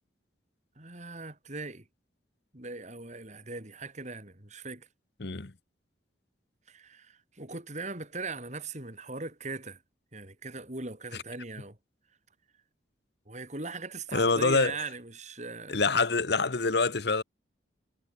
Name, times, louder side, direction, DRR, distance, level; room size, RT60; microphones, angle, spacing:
voice 1, 0.8-1.8 2.5-4.9 6.7-9.8 10.1-11.8 13.3-15.8, right 3 dB, 40° right, 3.4 m, -40 dB
voice 2, 5.2-5.5 14.1-14.8 15.7-17.2, left 3 dB, 60° left, 1.1 m, -25 dB
head